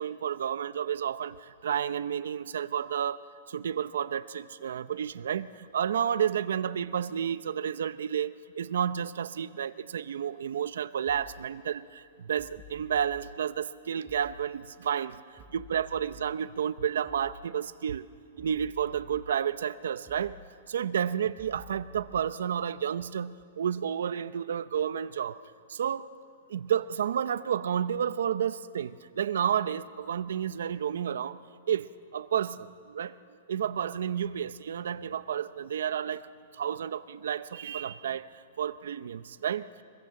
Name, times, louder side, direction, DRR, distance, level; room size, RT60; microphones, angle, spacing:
voice 1, 0.0-3.2 3.5-18.1 18.4-20.4 20.7-25.4 25.7-26.1 26.5-31.4 31.7-33.2 33.5-36.2 36.5-38.3 38.6-39.8, right 8 dB, 85° right, 14 dB, 0.7 m, -31 dB
sound 1, 11.1-11.4 12.4-13.2 14.1-14.4 15.4-16.3 17.1-17.4 18.4-19.3 20.1-20.4 21.4-22.3, equal, 10° right, 3.1 m, -51 dB
23.5 x 21.5 x 7.7 m, 2.3 s
hypercardioid pair, 170°, 0 cm